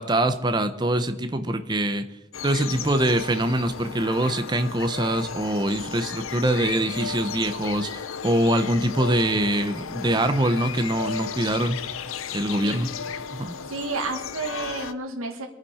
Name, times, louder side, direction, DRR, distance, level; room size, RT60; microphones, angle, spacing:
voice 1, 0.0-2.0 2.4-11.8 12.3-12.9 13.3-13.5, right 1 dB, 20° right, 9 dB, 0.8 m, -24 dB
sound 1, 2.3-14.9, left 6 dB, 75° left, 0.7 m, -34 dB
voice 2, 13.7-15.5, right 3 dB, 85° right, 2 dB, 1.8 m, -31 dB
24.0 x 9.4 x 4.4 m, 0.98 s
head